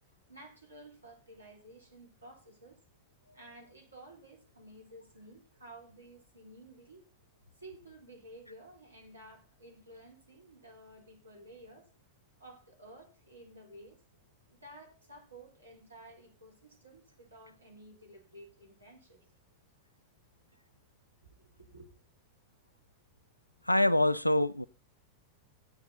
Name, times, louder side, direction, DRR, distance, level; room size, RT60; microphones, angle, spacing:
voice 1, 0.3-2.8 3.3-7.0 7.5-11.9 12.4-14.0 14.5-19.3 21.4-21.9, right 1 dB, 80° right, 3.6 m, -53 dB
voice 2, 23.6-24.6, left 1 dB, 85° left, 0.5 m, -25 dB
13.5 x 9.6 x 4.0 m
figure-of-eight pair, 90°, 0 cm